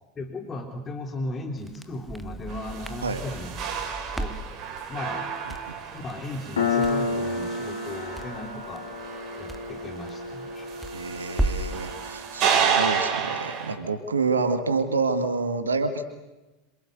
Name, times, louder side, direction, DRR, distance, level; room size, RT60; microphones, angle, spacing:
voice 1, 0.2-3.6 4.0-4.4 4.9-5.3 5.9-8.9 9.4-10.7, left 2 dB, 25° left, 4 dB, 3.6 m, -36 dB
Crackle, 1.6-11.8, right 1 dB, 5° right, 1.8 m, -36 dB
sound 1, 2.5-13.8, right 7 dB, 40° right, 4.3 m, -31 dB
Piano, 6.6-13.7, left 4 dB, 75° left, 5.2 m, -31 dB
voice 2, 10.9-16.0, right 4 dB, 80° right, 8 dB, 2.2 m, -27 dB
27.5 x 26.5 x 8.2 m, 1.1 s
figure-of-eight pair, 85°, 0 cm